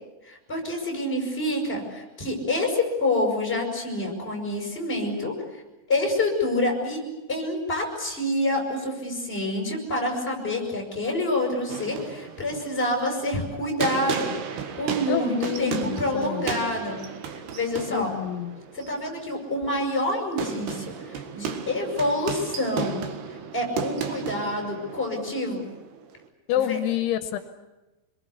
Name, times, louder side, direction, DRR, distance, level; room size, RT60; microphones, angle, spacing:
voice 1, 0.2-5.3 5.9-7.0 7.3-14.3 14.8-17.0 17.5-18.1 18.7-23.0 23.5-25.6 26.5-26.8, left 1 dB, 10° left, 1 dB, 7.0 m, -27 dB
sound 1, 11.7-26.3, right 6 dB, 65° right, 3.6 m, -34 dB
voice 2, 15.1-16.6 17.9-18.6 26.5-27.4, left 12 dB, 80° left, 8 dB, 3.4 m, -28 dB
27.0 x 22.0 x 8.4 m, 1.1 s
omnidirectional pair, 5.4 m